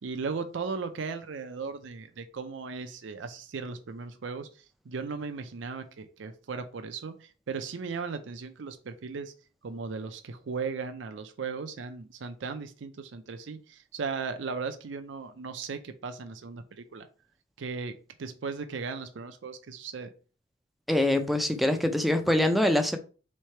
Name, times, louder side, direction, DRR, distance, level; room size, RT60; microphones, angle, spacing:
voice 1, 0.0-9.3 9.6-17.1 17.6-20.1, right 5 dB, 75° right, 0.5 m, -37 dB
voice 2, 20.9-23.0, left 1 dB, ahead, 0.4 m, -24 dB
3.7 x 3.2 x 4.3 m
head